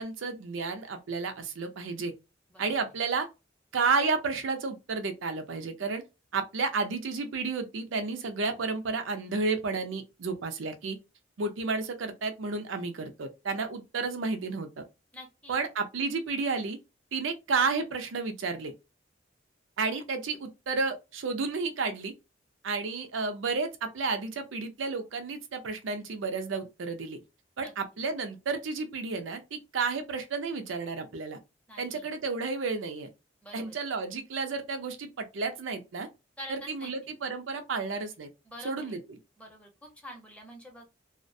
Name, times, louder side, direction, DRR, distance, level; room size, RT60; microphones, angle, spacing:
voice 1, 0.0-2.1 2.6-3.3 3.7-6.0 6.3-11.0 11.4-14.8 15.5-16.8 17.1-18.7 19.8-22.1 22.6-27.2 27.6-31.4 31.8-33.1 33.5-36.1 36.5-38.3 38.6-39.0, right 4 dB, 80° right, 0.5 m, -31 dB
voice 2, 15.1-15.6 27.6-27.7 31.7-32.1 33.4-33.7 36.4-36.9 38.4-39.0 39.4-40.9, equal, 5° left, 0.7 m, -46 dB
2.4 x 2.1 x 2.6 m
head